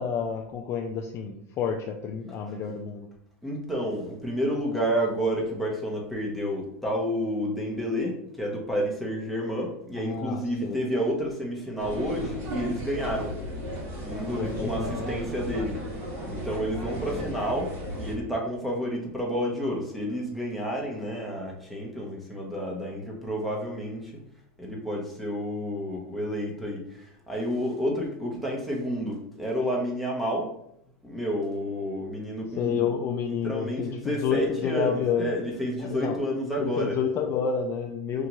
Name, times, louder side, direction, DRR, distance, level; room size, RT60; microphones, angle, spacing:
voice 1, 0.0-3.1 10.0-10.8 14.3-15.2 32.6-35.4 35.8-36.2 36.6-38.3, left 6 dB, 35° left, 2 dB, 0.4 m, -29 dB
voice 2, 3.4-13.3 14.0-15.8 16.2-24.2 24.6-30.5 31.0-32.8 33.4-37.0, equal, ahead, -3 dB, 1.0 m, -30 dB
sound 1, 11.8-18.1, equal, 35° right, 1.5 m, -35 dB
5.5 x 2.5 x 3.0 m, 0.73 s
supercardioid pair, 130°, 7 cm